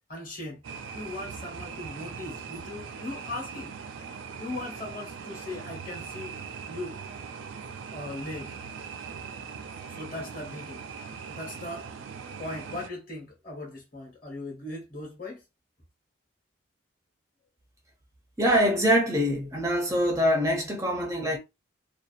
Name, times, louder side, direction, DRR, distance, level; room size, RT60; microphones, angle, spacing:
voice 1, 0.1-0.6 0.9-3.7 4.4-6.4 6.7-7.0 7.9-8.6 9.9-10.8 11.2-11.9 12.4-15.4, left 2 dB, 45° left, 1.1 m, -38 dB
sound 1, 0.6-12.9, right 6 dB, 80° right, 0.4 m, -40 dB
voice 2, 18.4-21.4, equal, 15° right, 0.4 m, -24 dB
2.7 x 2.1 x 2.4 m
head